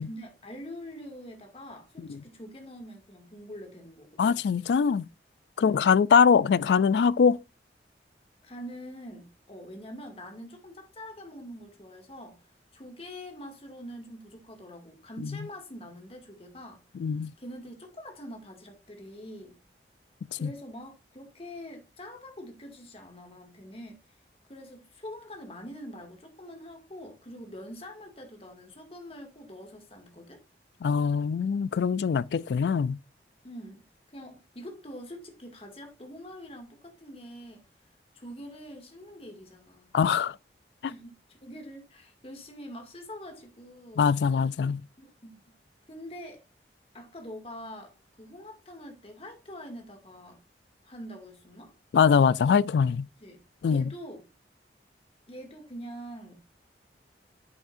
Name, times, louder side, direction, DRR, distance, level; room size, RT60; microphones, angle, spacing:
voice 1, 0.0-4.3 5.6-5.9 8.4-12.4 12.7-16.8 17.1-19.6 20.3-24.0 24.5-30.4 33.4-33.8 34.1-37.6 38.1-40.0 40.8-44.1 45.0-45.5 45.9-46.4 46.9-50.4 50.8-51.7 53.2-53.4 53.7-54.2 55.3-56.3, equal, 35° left, 2.2 m, -44 dB
voice 2, 4.2-5.0 5.6-7.4 17.0-17.3 20.4-20.5 30.8-33.0 39.9-40.3 44.0-44.8 51.9-53.1 53.6-53.8, left 6 dB, 75° left, 0.3 m, -22 dB
8.4 x 8.0 x 2.6 m
head